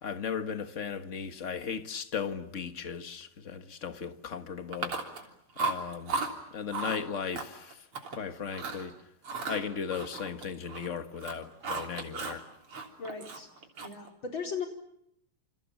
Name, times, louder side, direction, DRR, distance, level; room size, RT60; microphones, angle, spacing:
voice 1, 0.0-5.0 5.6-6.2 6.5-7.9 8.1-9.0 9.5-12.4, left 6 dB, 35° left, 1.8 m, -36 dB
Chewing mastication, 4.7-5.3 5.6-6.3 6.7-7.0 7.3-8.2 8.5-8.8 9.2-10.9 11.1-12.4 12.7-14.1, right 4 dB, 90° right, 4.2 m, -35 dB
voice 2, 13.0-13.5 13.8-14.7, left 5 dB, 65° left, 5.2 m, -37 dB
28.5 x 27.5 x 7.2 m
omnidirectional pair, 2.3 m